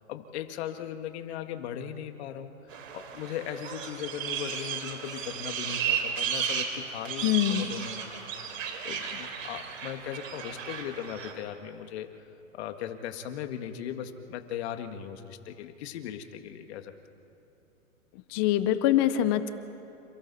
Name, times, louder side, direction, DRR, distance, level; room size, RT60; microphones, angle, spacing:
voice 1, 0.1-7.2 7.6-8.2 8.8-12.2 12.5-16.9, left 9 dB, 50° left, 7 dB, 1.8 m, -38 dB
sound 1, 2.7-11.3, right 7 dB, 70° right, 3.5 m, -34 dB
voice 2, 7.2-7.7 18.3-19.5, left 12 dB, 20° left, 12 dB, 0.4 m, -24 dB
29.0 x 28.5 x 4.2 m, 2.8 s
hypercardioid pair, 135°, 41 cm